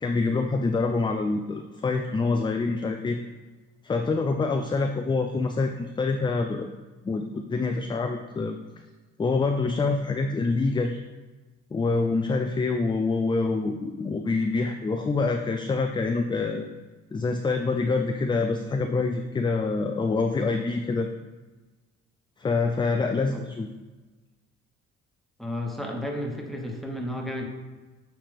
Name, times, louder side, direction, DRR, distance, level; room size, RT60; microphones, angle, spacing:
voice 1, 0.0-3.2 3.8-6.7 7.0-8.6 9.2-11.0 11.7-16.7 17.1-21.1 22.4-23.7, left 3 dB, 15° left, 5 dB, 0.3 m, -26 dB
voice 2, 25.4-27.5, left 1 dB, ahead, 0 dB, 1.1 m, -32 dB
8.7 x 3.3 x 3.5 m, 1.2 s
cardioid pair, 90°, 30 cm